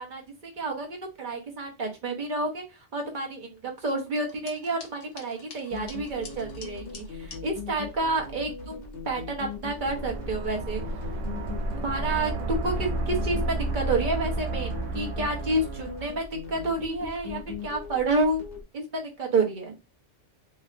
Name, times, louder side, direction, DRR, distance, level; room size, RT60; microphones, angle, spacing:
voice 1, 0.0-2.6 2.9-10.8 11.8-18.4 18.7-19.7, right 2 dB, 45° right, 2 dB, 0.9 m, -29 dB
sound 1, 4.1-7.4, left 4 dB, 55° left, 0.8 m, -47 dB
sound 2, 5.7-18.6, left 4 dB, 70° left, 1.1 m, -40 dB
sound 3, 9.7-16.1, right 2 dB, 85° right, 1.0 m, -31 dB
3.0 x 2.6 x 2.4 m, 0.25 s
omnidirectional pair, 1.2 m